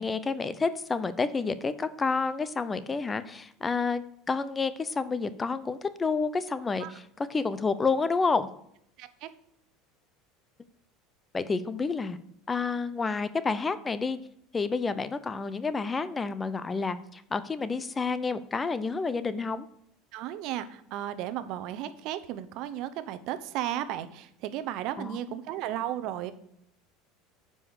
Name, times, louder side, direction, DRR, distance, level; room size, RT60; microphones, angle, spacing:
voice 1, 0.0-8.5 11.3-12.2 12.5-14.2 14.5-19.7 25.0-25.4, left 4 dB, 20° left, 14 dB, 0.6 m, -29 dB
voice 2, 9.0-9.3 20.1-26.3, right 12 dB, 60° right, 12 dB, 0.8 m, -34 dB
9.6 x 5.5 x 6.3 m, 0.72 s
supercardioid pair, 125°, 0 cm